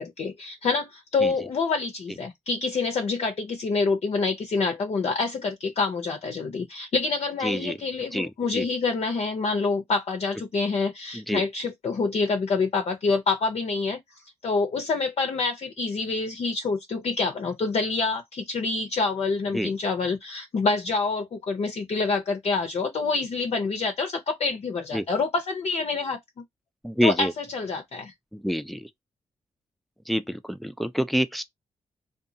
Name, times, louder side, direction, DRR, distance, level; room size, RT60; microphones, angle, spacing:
voice 1, 0.0-14.0 14.4-26.2 27.0-28.1, left 4 dB, 55° left, 0.5 m, -27 dB
voice 2, 7.4-7.8 8.1-8.7 11.1-11.4 19.5-19.7 24.9-25.0 26.8-27.3 28.3-28.9 30.1-31.4, equal, ahead, 0.4 m, -27 dB
2.7 x 2.3 x 2.6 m
cardioid pair, 60°, 12 cm